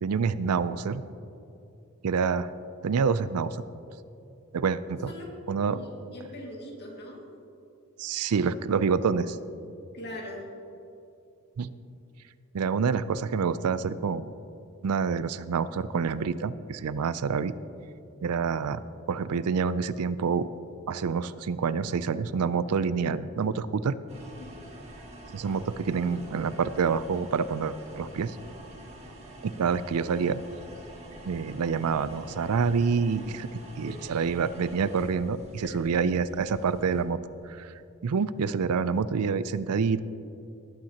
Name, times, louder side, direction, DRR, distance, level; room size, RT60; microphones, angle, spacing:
voice 1, 0.0-1.0 2.0-2.5 2.8-3.6 4.5-5.1 5.5-5.8 8.0-9.4 11.6-11.7 12.5-14.3 14.8-17.5 18.2-18.8 19.1-20.5 20.9-24.0 25.3-28.4 29.4-30.4 31.3-33.5 33.8-37.2 37.5-37.7 38.0-40.0, right 5 dB, 85° right, 15 dB, 0.4 m, -27 dB
voice 2, 5.7-7.2 9.9-10.4 18.2-18.3 24.5-24.6 33.9-34.0 35.6-35.8, left 1 dB, 50° left, -1 dB, 2.2 m, -41 dB
sound 1, 24.1-37.0, right 1 dB, 30° right, 2.0 m, -47 dB
19.0 x 9.1 x 2.9 m, 2.8 s
head